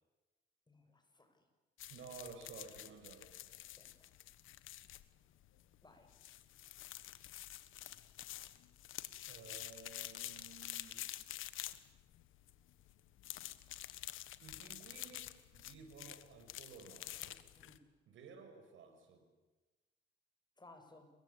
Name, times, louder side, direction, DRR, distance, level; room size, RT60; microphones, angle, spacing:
voice 1, 0.7-1.4 3.7-4.1 5.8-6.1 17.6-17.8 20.6-21.1, left 2 dB, 20° left, 6 dB, 7.0 m, -61 dB
sound 1, 1.8-17.8, left 14 dB, 85° left, 1.4 m, -49 dB
voice 2, 1.9-3.3 9.2-11.1 14.4-17.4 18.1-19.3, right 5 dB, 75° right, 6 dB, 6.4 m, -54 dB
28.0 x 24.0 x 8.6 m, 1.2 s
cardioid pair, 90°, 20 cm